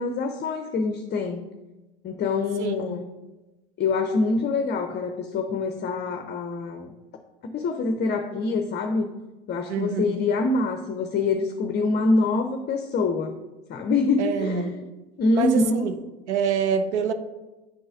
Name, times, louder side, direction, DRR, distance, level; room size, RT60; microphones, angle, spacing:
voice 1, 0.0-1.5 2.0-3.1 3.8-6.9 7.5-9.1 9.5-13.4 13.7-14.8 15.2-15.9, left 3 dB, 30° left, 6 dB, 0.6 m, -25 dB
voice 2, 2.6-3.0 9.7-10.0 14.2-14.8 15.3-16.0 16.3-17.1, right 6 dB, 85° right, 9 dB, 0.6 m, -26 dB
10.0 x 3.9 x 2.5 m, 1.1 s
hypercardioid pair, 85°, 33 cm